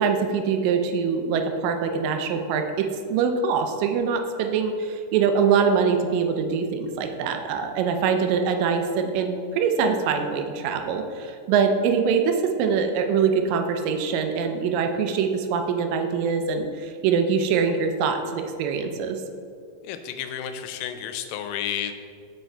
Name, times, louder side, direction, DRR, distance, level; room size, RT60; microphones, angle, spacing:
voice 1, 0.0-2.6 3.1-19.2, right 6 dB, 80° right, 5 dB, 2.3 m, -23 dB
voice 2, 19.8-21.9, left 9 dB, 85° left, 8 dB, 2.2 m, -31 dB
8.0 x 4.8 x 4.4 m, 2.3 s
omnidirectional pair, 4.0 m